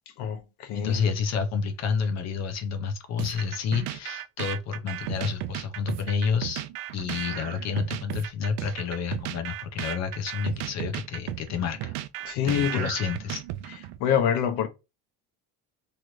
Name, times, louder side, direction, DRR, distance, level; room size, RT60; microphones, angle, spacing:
voice 1, 0.2-1.0 12.2-12.9 14.0-14.7, left 8 dB, 75° left, 0.8 m, -26 dB
voice 2, 0.7-6.6 6.9-11.9 12.4-13.4, left 6 dB, 45° left, 0.5 m, -29 dB
sound 1, 3.2-14.0, right 14 dB, 80° right, 0.5 m, -35 dB
3.0 x 2.5 x 3.0 m
cardioid pair, 150°, 39 cm